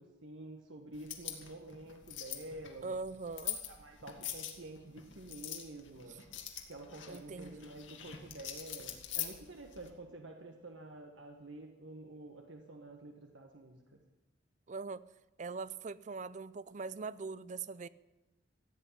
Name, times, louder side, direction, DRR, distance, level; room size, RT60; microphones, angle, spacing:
voice 1, 0.0-2.9 3.4-6.2 6.7-13.8, right 2 dB, 85° right, 3 dB, 1.5 m, -49 dB
sound 1, 0.9-9.9, left 10 dB, 90° left, 2.0 m, -44 dB
voice 2, 2.8-3.6 7.1-7.8 14.7-15.0 15.4-17.9, right 4 dB, 40° right, 17 dB, 0.5 m, -42 dB
15.5 x 8.4 x 10.0 m, 1.0 s
head